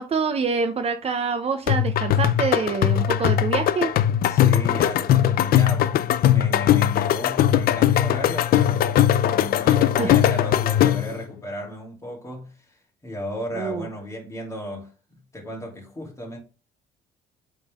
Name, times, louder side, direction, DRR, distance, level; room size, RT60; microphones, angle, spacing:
voice 1, 0.0-3.9 10.0-10.1 13.6-13.9, right 5 dB, 35° right, 0.8 m, -26 dB
sound 1, 1.7-11.2, left 11 dB, 60° left, 0.5 m, -20 dB
voice 2, 4.2-16.4, left 1 dB, 15° left, 3.1 m, -35 dB
7.8 x 3.9 x 3.6 m
cardioid pair, 110°, 17 cm